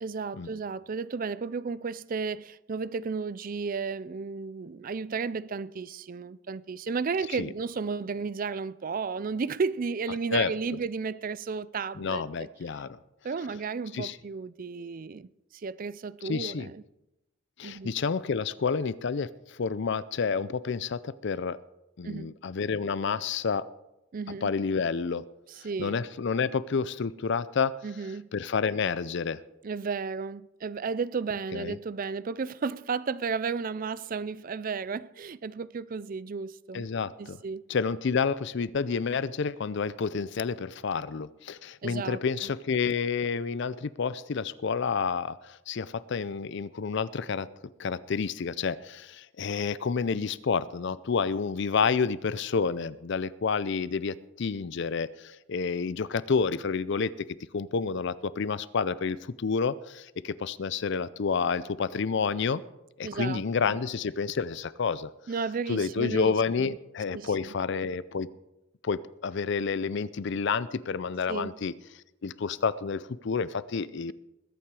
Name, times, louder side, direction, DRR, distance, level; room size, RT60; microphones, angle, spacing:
voice 1, 0.0-12.5 13.2-16.8 17.6-17.9 22.0-22.4 24.1-24.5 25.5-26.0 27.8-28.3 29.6-36.9 37.2-37.6 41.8-42.5 63.0-63.4 63.7-63.8 65.3-66.8 67.1-67.5 71.3-71.5, right 5 dB, 45° right, 0.4 m, -33 dB
voice 2, 12.0-13.0 13.9-14.2 16.2-16.7 17.6-21.6 22.0-23.6 24.4-25.2 25.8-27.7 28.3-29.4 31.5-31.8 36.7-37.4 37.7-47.5 47.8-57.1 57.5-62.6 63.0-65.1 65.7-68.3 68.8-71.7 72.2-74.1, left 5 dB, 60° left, 0.5 m, -29 dB
21.0 x 8.8 x 4.8 m
head